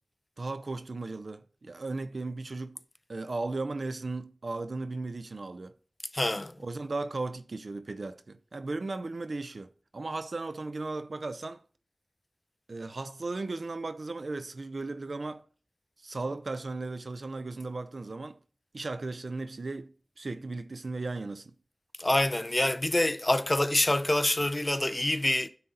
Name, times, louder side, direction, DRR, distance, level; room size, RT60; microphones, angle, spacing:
voice 1, 0.4-2.8 3.1-5.7 6.6-11.6 12.7-15.4 16.0-18.4 18.7-21.5, right 3 dB, 75° right, 0.5 m, -36 dB
voice 2, 6.1-6.5 22.0-25.5, left 1 dB, 30° left, 0.5 m, -26 dB
9.4 x 3.9 x 4.2 m
wide cardioid pair, 50°, 0 cm